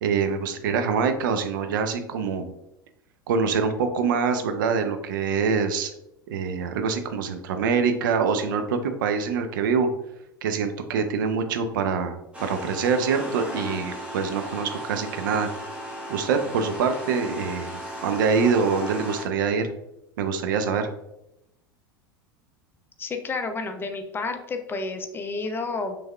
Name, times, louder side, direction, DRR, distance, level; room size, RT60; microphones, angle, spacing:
voice 1, 0.0-2.5 3.3-5.9 6.3-9.9 10.4-15.5 16.1-17.7 18.0-19.7 20.2-20.9, right 5 dB, 60° right, 8 dB, 0.6 m, -25 dB
sound 1, 12.3-19.2, equal, 10° right, 1.3 m, -36 dB
voice 2, 23.0-26.0, left 3 dB, 20° left, 7 dB, 0.6 m, -30 dB
6.2 x 3.3 x 2.3 m, 0.84 s
figure-of-eight pair, 85°, 12 cm